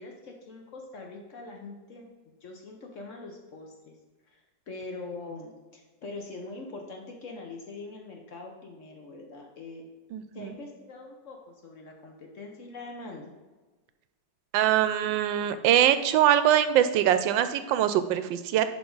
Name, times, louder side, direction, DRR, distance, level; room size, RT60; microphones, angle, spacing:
voice 1, 0.0-2.1 2.4-3.9 4.3-9.9 10.3-13.3, left 3 dB, 55° left, 1 dB, 1.0 m, -43 dB
voice 2, 10.1-10.5 14.5-18.6, right 11 dB, 90° right, 11 dB, 1.3 m, -23 dB
10.5 x 3.6 x 3.9 m, 1.3 s
omnidirectional pair, 2.0 m